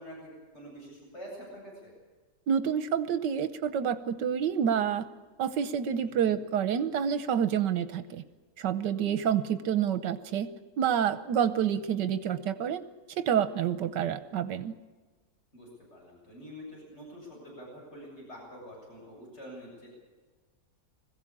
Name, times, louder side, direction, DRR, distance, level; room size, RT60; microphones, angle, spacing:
voice 1, 0.0-1.9 6.1-6.4 15.5-19.9, equal, 40° left, -3 dB, 8.5 m, -46 dB
voice 2, 2.5-5.1 5.4-8.2 8.6-10.5 10.8-12.8 13.1-14.7, right 8 dB, 85° right, 12 dB, 1.5 m, -28 dB
21.5 x 16.0 x 8.6 m, 1.4 s
omnidirectional pair, 1.9 m